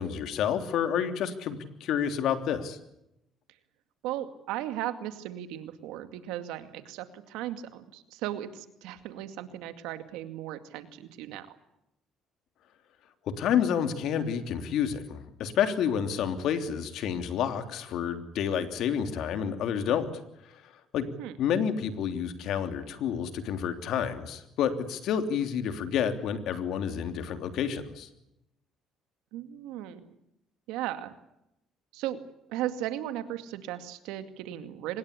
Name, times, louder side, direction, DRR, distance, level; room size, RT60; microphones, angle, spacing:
voice 1, 0.0-2.8 13.4-20.1 20.5-21.1 21.4-28.1, left 8 dB, 70° left, 8 dB, 3.2 m, -29 dB
voice 2, 4.0-11.6 21.2-21.4 29.3-30.0 30.7-31.1 31.9-32.2 32.5-35.0, right 12 dB, 90° right, 10 dB, 2.2 m, -36 dB
24.5 x 20.5 x 8.4 m, 0.83 s
cardioid pair, 100°, 0 cm